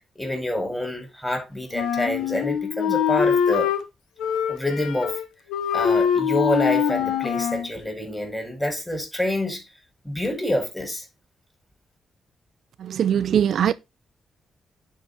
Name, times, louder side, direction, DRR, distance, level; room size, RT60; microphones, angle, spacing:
voice 1, 0.1-3.7 4.5-5.2 5.7-9.6 10.0-11.0, left 1 dB, 10° left, 4.7 m, -27 dB
Wind instrument woodwind instrument, 1.7-3.8 4.2-5.2 5.5-7.7, left 8 dB, 90° left, 0.9 m, -23 dB
voice 2, 12.8-13.7, right 9 dB, 75° right, 0.4 m, -21 dB
10.5 x 4.8 x 4.0 m
cardioid pair, 65°, 0 cm